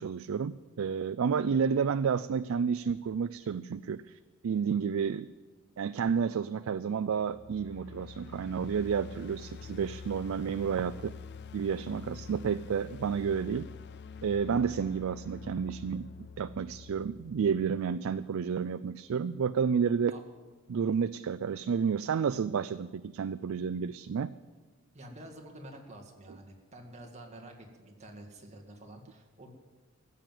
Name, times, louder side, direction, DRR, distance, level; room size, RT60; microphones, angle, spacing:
voice 1, 0.0-5.3 5.8-11.1 11.5-13.7 14.2-16.1 16.4-20.1 20.7-24.3, right 6 dB, 75° right, 13 dB, 0.4 m, -30 dB
sound 1, 7.2-18.2, left 6 dB, 55° left, 0.4 m, -46 dB
voice 2, 24.9-29.5, right 1 dB, 35° right, 2 dB, 2.0 m, -49 dB
15.0 x 7.7 x 9.2 m, 1.3 s
head